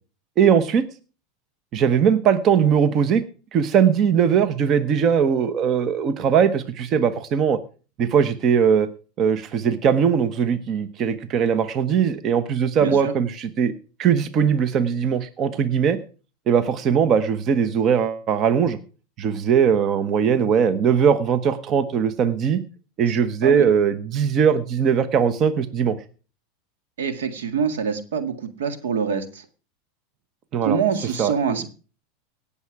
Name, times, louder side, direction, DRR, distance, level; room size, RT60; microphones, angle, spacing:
voice 1, 0.4-0.8 1.7-3.2 3.5-7.6 8.0-8.9 9.2-13.7 14.0-16.0 16.5-18.8 19.2-22.6 23.0-26.0 30.5-30.8 31.2-31.6, right 7 dB, 40° right, 12 dB, 1.1 m, -20 dB
voice 2, 12.8-13.1 23.1-23.2 23.4-23.7 27.0-29.4 30.6-31.7, right 6 dB, 85° right, 9 dB, 1.9 m, -25 dB
17.5 x 7.1 x 4.8 m, 0.36 s
hypercardioid pair, 110°, 0 cm